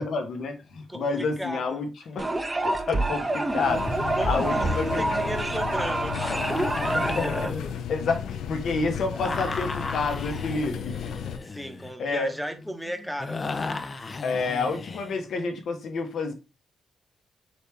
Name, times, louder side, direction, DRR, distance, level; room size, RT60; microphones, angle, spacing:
voice 1, 0.0-2.3 2.6-5.1 6.9-7.5 7.9-11.2 12.0-12.3 14.2-16.3, left 4 dB, 70° left, 1.0 m, -29 dB
voice 2, 0.9-1.8 4.2-7.4 11.4-13.4, equal, 5° right, 1.0 m, -36 dB
sound 1, 2.2-7.5, right 2 dB, 20° right, 0.7 m, -27 dB
sound 2, 3.7-11.4, left 8 dB, 90° left, 0.3 m, -34 dB
sound 3, 6.2-8.6 9.1-15.2, left 3 dB, 40° left, 0.5 m, -35 dB
4.0 x 3.4 x 3.3 m
cardioid pair, 80°, 0 cm